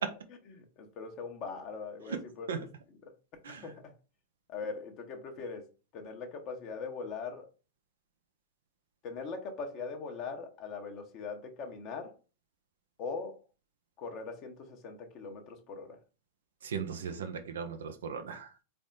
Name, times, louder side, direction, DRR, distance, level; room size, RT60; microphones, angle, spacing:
voice 1, 0.5-3.1 3.5-3.9 4.5-5.7 5.9-7.5 9.0-12.1 13.0-13.4 14.0-16.0, left 4 dB, 40° left, 0.9 m, -41 dB
voice 2, 16.6-18.5, right 6 dB, 65° right, 0.6 m, -37 dB
4.0 x 3.4 x 3.8 m
figure-of-eight pair, 90°, 0 cm